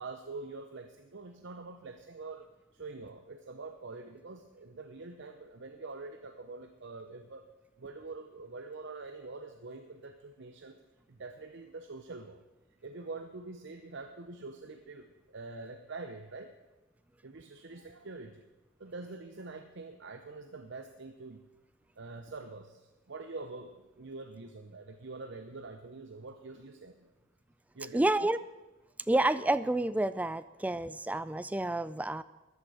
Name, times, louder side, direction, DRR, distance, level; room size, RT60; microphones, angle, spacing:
voice 1, 0.0-7.4 7.8-10.8 11.1-12.4 12.8-16.5 17.2-18.4 18.8-21.4 22.0-27.1 27.7-28.3, right 3 dB, 60° right, 6 dB, 0.7 m, -45 dB
voice 2, 27.9-28.4 29.1-32.2, right 1 dB, 5° right, 14 dB, 0.3 m, -29 dB
13.5 x 10.5 x 4.9 m, 1.1 s
head